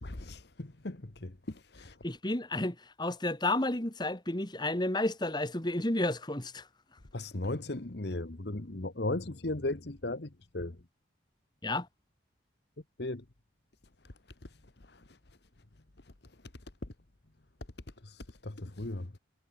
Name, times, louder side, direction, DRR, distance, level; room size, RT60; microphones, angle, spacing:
voice 1, 0.0-2.0 7.1-10.8 13.0-13.2 14.0-14.1 14.4-15.2 18.0-19.2, left 2 dB, 60° left, 1.3 m, -37 dB
voice 2, 2.0-6.6 11.6-11.9, left 1 dB, 25° left, 1.9 m, -31 dB
head